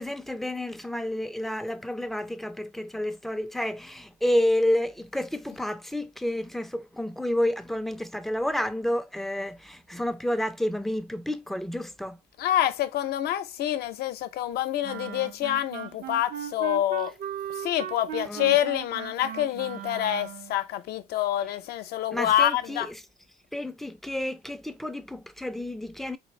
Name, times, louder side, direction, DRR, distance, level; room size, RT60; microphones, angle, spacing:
voice 1, 0.0-12.2 18.3-18.5 22.1-22.9 23.5-26.2, left 1 dB, ahead, 0.4 m, -30 dB
voice 2, 12.4-17.1 17.5-22.9, left 12 dB, 70° left, 0.6 m, -27 dB
Wind instrument woodwind instrument, 14.8-20.6, right 10 dB, 60° right, 0.5 m, -37 dB
4.2 x 2.6 x 3.1 m
cardioid pair, 110°, 17 cm